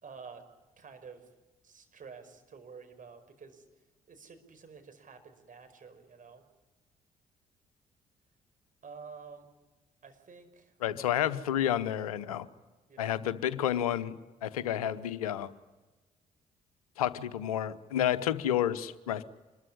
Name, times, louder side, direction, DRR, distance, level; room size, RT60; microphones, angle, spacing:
voice 1, 0.0-0.5 0.8-1.3 1.6-3.6 4.1-6.5 8.8-9.5 10.0-10.8 11.1-11.3 12.9-13.3 14.5-14.6, right 5 dB, 45° right, 7 dB, 5.1 m, -50 dB
voice 2, 10.8-12.5 13.0-14.1 14.4-15.5 17.0-19.2, left 11 dB, 85° left, 15 dB, 0.9 m, -30 dB
26.0 x 21.5 x 10.0 m, 1.1 s
hypercardioid pair, 40°, 18 cm